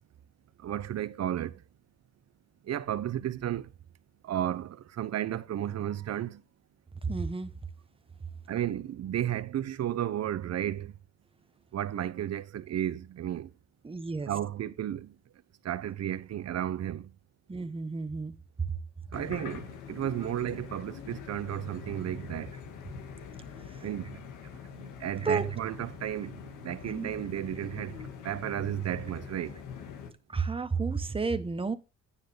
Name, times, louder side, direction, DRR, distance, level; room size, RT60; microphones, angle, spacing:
voice 1, 0.6-1.6 2.6-3.7 4.2-6.4 8.5-10.9 11.7-13.5 14.3-15.1 15.6-17.1 19.1-22.5 23.8-24.2 24.7-28.0 28.2-29.6, right 11 dB, 60° right, 0.9 m, -33 dB
voice 2, 7.1-7.5 13.8-14.3 17.5-18.3 25.2-25.4 26.9-27.1 30.3-31.8, right 4 dB, 20° right, 1.2 m, -31 dB
sound 1, 19.1-30.1, left 6 dB, 85° left, 1.9 m, -44 dB
9.9 x 9.8 x 3.4 m
cardioid pair, 90°, 30 cm